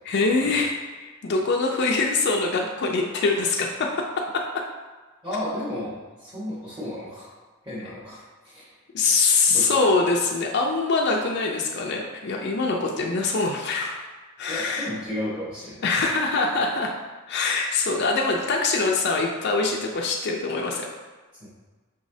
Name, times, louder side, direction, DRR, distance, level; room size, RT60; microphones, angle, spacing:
voice 1, 0.0-4.6 8.9-14.1 14.4-14.9 15.8-16.9 17.3-20.9, left 3 dB, 55° left, 0 dB, 0.4 m, -24 dB
voice 2, 5.2-7.4 7.6-8.7 9.2-9.7 14.5-15.8 21.4-21.5, left 1 dB, 20° right, -13 dB, 1.1 m, -33 dB
5.4 x 3.1 x 2.7 m, 1.3 s
head